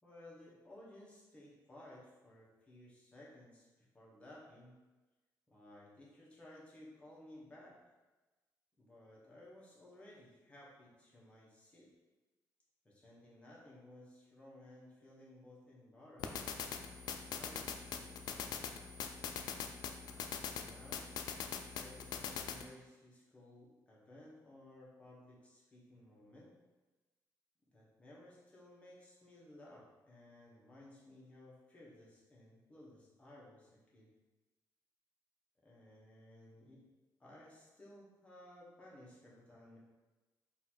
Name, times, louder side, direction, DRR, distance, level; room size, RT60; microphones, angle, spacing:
voice 1, 0.0-4.8 5.5-7.8 8.8-11.9 12.8-16.5 17.3-18.6 20.1-21.1 21.7-26.5 27.7-34.1 35.6-36.9 37.2-39.8, left 1 dB, 15° left, -6 dB, 1.2 m, -58 dB
sound 1, 16.2-22.7, left 7 dB, 75° left, 0.4 m, -43 dB
4.1 x 2.7 x 4.4 m, 1.2 s
cardioid pair, 140°, 7 cm